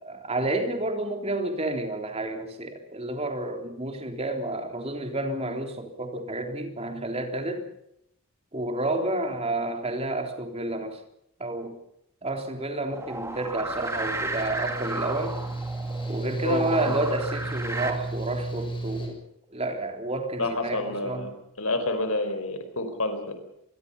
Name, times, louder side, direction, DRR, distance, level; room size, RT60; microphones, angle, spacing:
voice 1, 0.0-7.7 8.5-11.0 11.4-11.8 12.2-15.4 16.1-19.2 19.5-21.3, right 2 dB, 30° right, 4 dB, 3.7 m, -30 dB
sound 1, 12.9-17.9, right 2 dB, 15° right, 2.4 m, -34 dB
Mechanical fan, 13.7-19.1, right 2 dB, 25° left, 7.1 m, -34 dB
voice 2, 16.4-17.0 20.4-21.3 21.6-23.4, left 2 dB, 80° left, 8 dB, 4.7 m, -29 dB
26.5 x 22.0 x 5.6 m, 0.76 s
head